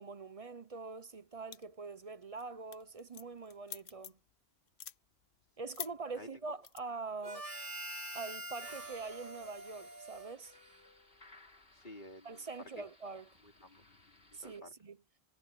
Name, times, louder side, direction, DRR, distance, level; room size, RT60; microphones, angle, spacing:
voice 1, 0.0-4.2 5.6-7.5 8.1-10.6 12.2-13.3 14.3-15.0, right 4 dB, 35° right, 0.9 m, -44 dB
sound 1, 1.5-1.9 2.2-2.4 2.7-4.3 4.7-5.0 5.7-5.9 6.6-6.8, left 9 dB, 85° left, 1.0 m, -45 dB
voice 2, 5.8-6.3 11.7-12.5 12.8-12.9 13.4-13.8 14.4-14.7, left 1 dB, 50° left, 4.1 m, -53 dB
Harmonica, 7.2-11.0, right 1 dB, 50° right, 3.1 m, -45 dB
sound 2, 8.6-14.6, left 2 dB, 65° left, 3.6 m, -62 dB
omnidirectional pair, 1.1 m